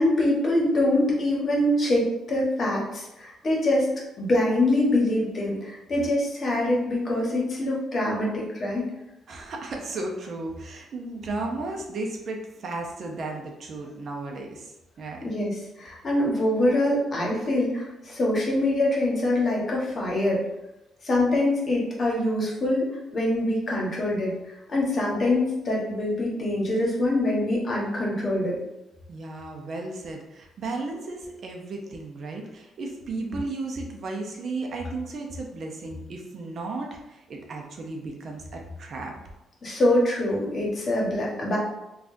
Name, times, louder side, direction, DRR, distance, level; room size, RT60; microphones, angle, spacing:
voice 1, 0.0-3.9 4.2-8.8 15.2-20.4 21.0-22.9 23.1-24.4 24.7-28.6 33.2-33.4 39.6-41.6, left 1 dB, 45° left, -3 dB, 1.1 m, -24 dB
voice 2, 9.3-14.7 15.0-15.2 29.1-39.1, right 2 dB, 55° right, 1 dB, 0.6 m, -34 dB
3.5 x 2.3 x 2.6 m, 0.93 s
cardioid pair, 90°, 0 cm